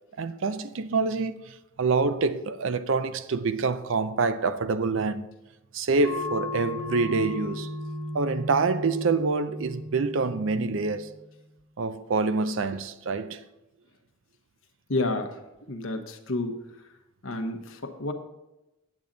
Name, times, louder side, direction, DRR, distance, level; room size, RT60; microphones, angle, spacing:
voice 1, 0.2-5.3 5.7-7.7 8.1-11.1 11.8-13.4, right 4 dB, 65° right, 0.5 m, -26 dB
sound 1, 6.0-11.2, left 2 dB, 90° right, 1.5 m, -35 dB
voice 2, 14.9-15.4 15.7-16.6 17.2-18.1, left 2 dB, 75° left, 1.0 m, -30 dB
8.6 x 8.6 x 3.9 m
head